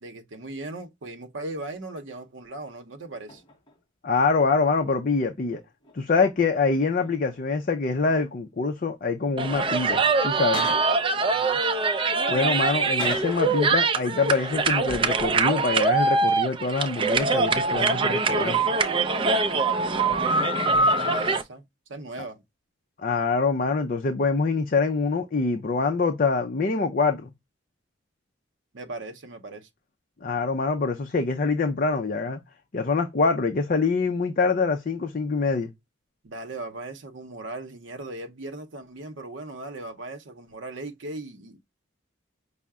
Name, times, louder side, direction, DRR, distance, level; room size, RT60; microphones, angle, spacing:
voice 1, 0.0-3.4 11.3-11.6 19.9-21.6 21.9-22.4 28.7-29.7 36.2-41.6, right 2 dB, 75° right, 0.7 m, -38 dB
sound 1, 2.6-2.7 3.3-3.8 4.6-6.1 6.4-7.4 7.8-8.5 9.2-9.4 10.2-11.0 11.7-13.6 13.9-14.1, left 3 dB, 25° left, 0.9 m, -41 dB
voice 2, 4.0-5.6 5.9-10.7 12.3-18.6 23.0-27.3 30.2-32.4 32.7-35.7, left 4 dB, 45° left, 0.5 m, -25 dB
sound 2, 9.4-21.4, right 3 dB, 25° right, 0.4 m, -23 dB
5.5 x 2.0 x 3.5 m
head